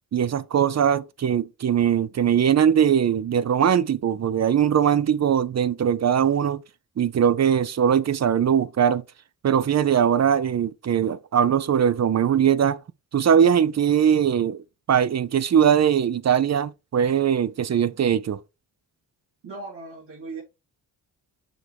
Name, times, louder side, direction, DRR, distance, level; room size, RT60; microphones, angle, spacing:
voice 1, 0.1-6.6 7.0-9.0 9.4-12.8 13.1-14.6 14.9-18.4, right 8 dB, 40° right, 0.5 m, -21 dB
voice 2, 19.4-20.4, right 3 dB, 85° right, 3.0 m, -37 dB
6.4 x 3.4 x 4.6 m
cardioid pair, 60°, 41 cm